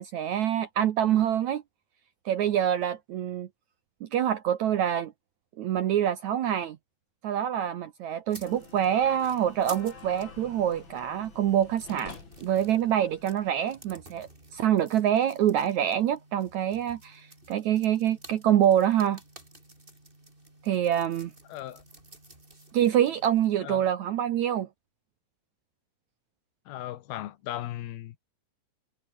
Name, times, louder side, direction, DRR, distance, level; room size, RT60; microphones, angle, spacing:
voice 1, 0.0-1.6 2.3-3.5 4.0-5.1 5.6-6.8 7.2-12.2 12.4-19.2 20.6-21.3 22.7-24.7, right 10 dB, 75° right, 1.7 m, -26 dB
sound 1, 8.3-23.5, right 1 dB, 10° right, 5.7 m, -52 dB
sound 2, 8.4-13.9, left 4 dB, 30° left, 3.6 m, -49 dB
voice 2, 21.5-21.8 23.6-23.8 26.7-28.2, left 13 dB, 75° left, 2.9 m, -37 dB
omnidirectional pair, 4.7 m